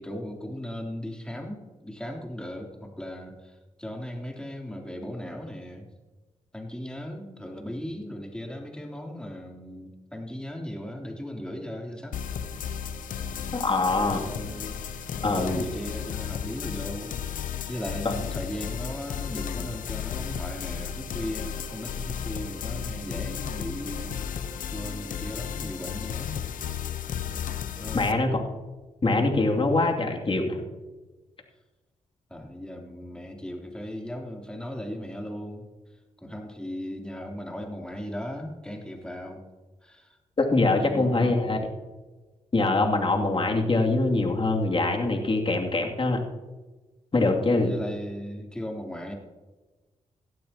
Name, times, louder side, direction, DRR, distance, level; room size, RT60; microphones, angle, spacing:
voice 1, 0.0-5.9 6.5-12.2 14.2-14.8 15.1-26.4 27.8-28.1 32.3-35.7 36.2-39.4 39.8-40.2 40.7-41.5 47.2-49.1, equal, 5° left, 0 dB, 3.2 m, -37 dB
sound 1, 12.1-28.1, left 8 dB, 75° left, 0.8 m, -34 dB
voice 2, 13.5-14.2 15.2-15.7 18.0-18.1 27.9-28.4 29.0-30.6 40.4-41.6 42.5-46.2 47.1-47.8, left 2 dB, 40° left, 1 dB, 2.6 m, -23 dB
17.0 x 12.5 x 2.9 m, 1.2 s
supercardioid pair, 50°, 14 cm